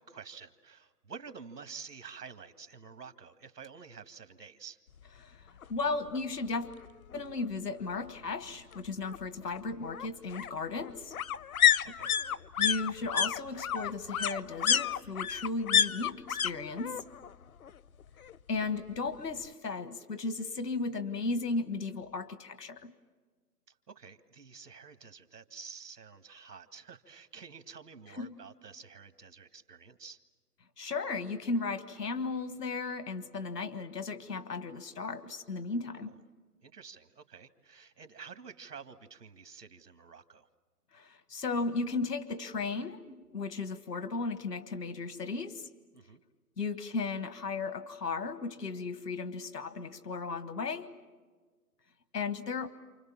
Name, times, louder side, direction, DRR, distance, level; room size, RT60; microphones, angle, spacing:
voice 1, 0.0-4.8 11.8-12.1 23.7-30.2 35.9-36.2 36.6-40.5 45.9-46.2, right 6 dB, 80° right, 9 dB, 2.0 m, -49 dB
voice 2, 5.2-6.7 7.1-11.1 12.6-17.0 18.5-22.9 28.2-28.3 30.8-36.1 40.9-45.7 46.6-50.9 52.1-52.7, left 3 dB, 90° left, 12 dB, 1.6 m, -35 dB
sound 1, 5.6-5.7 6.1-6.2 6.4-7.4 8.7-16.5 16.8-17.3 17.6-18.7 19.0-19.1, left 9 dB, 65° left, 0.7 m, -30 dB
29.0 x 28.0 x 7.3 m, 1.4 s
hypercardioid pair, 155°, 47 cm